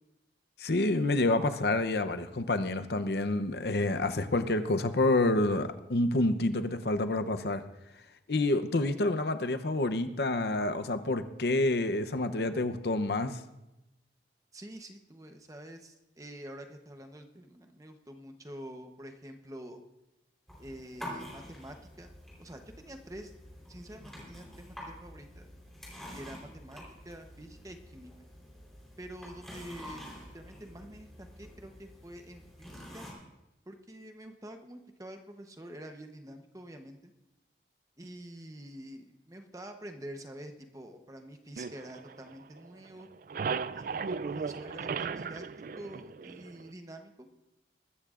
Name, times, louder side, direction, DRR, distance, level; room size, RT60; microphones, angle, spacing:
voice 1, 0.6-7.6 8.3-13.4, left 2 dB, 65° left, 10 dB, 0.7 m, -28 dB
voice 2, 14.5-19.8 20.6-22.1 22.4-23.3 23.7-25.5 26.1-28.1 29.0-33.1 33.7-37.1 38.0-43.1 43.7-45.5 45.8-47.3, right 1 dB, 20° right, 5 dB, 0.9 m, -47 dB
sound 1, 20.5-33.1, equal, ahead, 3.8 m, -48 dB
sound 2, 41.6-42.7 43.0-46.7, right 5 dB, 50° right, 0.3 m, -36 dB
22.5 x 13.5 x 2.5 m, 0.95 s
head